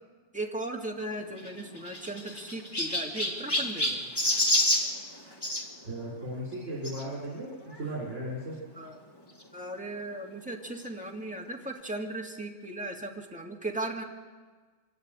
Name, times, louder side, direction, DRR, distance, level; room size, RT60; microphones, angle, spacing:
voice 1, 0.3-4.0 8.8-9.0 9.5-14.0, right 2 dB, 5° right, 0 dB, 2.1 m, -37 dB
Chirp tweet, 1.3-5.7 6.8-7.0 7.7-7.8 8.0-8.1 9.4-9.5, left 1 dB, 20° left, 2.0 m, -29 dB
voice 2, 5.8-7.5 7.8-8.6, right 1 dB, 70° right, -5 dB, 4.1 m, -36 dB
25.5 x 12.0 x 8.8 m, 1.4 s
omnidirectional pair, 1.3 m